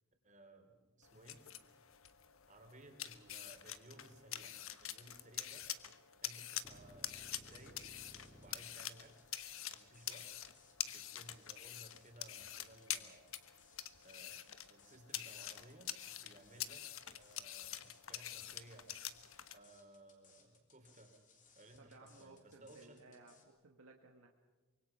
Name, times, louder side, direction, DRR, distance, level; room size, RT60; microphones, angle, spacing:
voice 1, 0.2-1.4 2.5-5.7 6.2-7.8 8.4-9.3 9.7-10.3 10.8-13.3 14.0-15.9 16.2-16.8 17.1-18.9 19.5-21.1 21.5-23.1, right 1 dB, 35° right, 4 dB, 3.4 m, -60 dB
sound 1, 1.0-19.6, left 11 dB, 65° left, 1.2 m, -47 dB
sound 2, 6.6-8.6, equal, 10° right, 3.3 m, -59 dB
sound 3, 7.4-23.4, left 5 dB, 35° left, 3.5 m, -68 dB
voice 2, 21.8-24.3, right 2 dB, 70° right, 2 dB, 1.8 m, -60 dB
25.0 x 23.0 x 5.8 m, 1.3 s
head